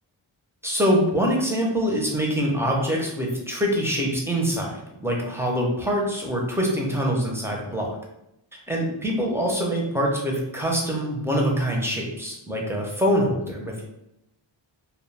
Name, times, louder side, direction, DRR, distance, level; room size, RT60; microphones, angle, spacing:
voice 1, 0.6-8.0 8.7-13.8, equal, 5° right, -2 dB, 0.6 m, -24 dB
2.3 x 2.2 x 3.2 m, 0.84 s
wide cardioid pair, 95°, 48 cm